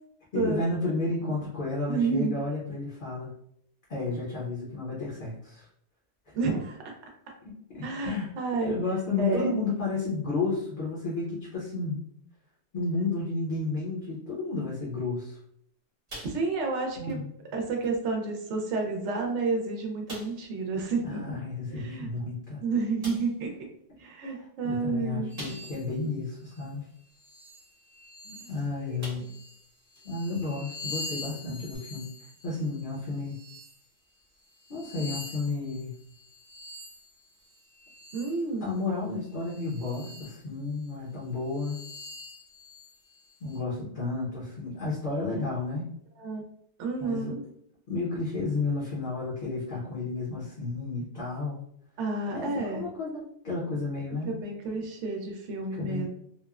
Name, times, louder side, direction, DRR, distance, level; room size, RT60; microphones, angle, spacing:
voice 1, 0.3-3.3 3.9-5.7 7.4-8.3 8.6-12.0 12.7-15.4 17.0-17.3 21.0-22.6 24.3-26.9 28.2-29.2 30.0-32.1 32.4-33.4 34.7-35.9 38.6-41.8 43.4-45.9 47.0-47.3 47.9-51.6 52.3-54.4 55.8-56.1, left 3 dB, 50° left, -6 dB, 0.8 m, -32 dB
voice 2, 1.9-2.3 6.3-6.9 7.8-8.7 9.2-9.6 16.2-17.2 17.5-21.3 21.7-22.1 22.6-23.7 24.0-25.3 28.4-28.5 28.9-29.0 38.1-38.8 46.2-46.4 46.8-47.4 52.0-52.9 54.2-56.1, right 3 dB, 80° right, 1 dB, 0.9 m, -30 dB
sound 1, 16.1-16.8 17.1-17.3 17.8-17.9 18.8-18.9 19.3-19.4 20.1-20.5 22.2-22.3 23.0-23.4 25.4-25.9 26.4-26.5 28.4-28.5 29.0-29.5 30.0-30.1 31.7-31.8, equal, 40° right, 1.1 m, -44 dB
sound 2, 25.3-25.9 26.5-26.6 27.1-28.7 29.2-33.8 34.4-38.5 39.3-40.4 40.9-41.0 41.5-43.6, left 2 dB, 5° right, 0.5 m, -45 dB
2.9 x 2.0 x 2.3 m, 0.70 s
omnidirectional pair, 1.2 m